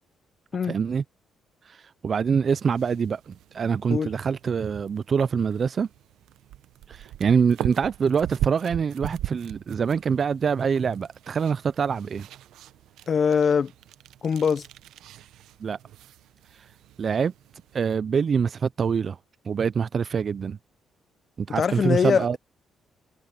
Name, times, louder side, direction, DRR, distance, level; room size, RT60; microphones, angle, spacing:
voice 1, 0.7-1.0 2.0-5.9 6.9-12.3 15.6-15.8 17.0-17.3 17.7-19.2 19.5-20.6 21.4-22.4, right 6 dB, 45° right, 0.4 m, -25 dB
sound 1, 2.5-17.8, right 13 dB, 85° right, 0.8 m, -39 dB
voice 2, 13.1-13.7 14.2-14.7 21.6-22.4, left 6 dB, 50° left, 0.7 m, -22 dB
cardioid pair, 90°, 0 cm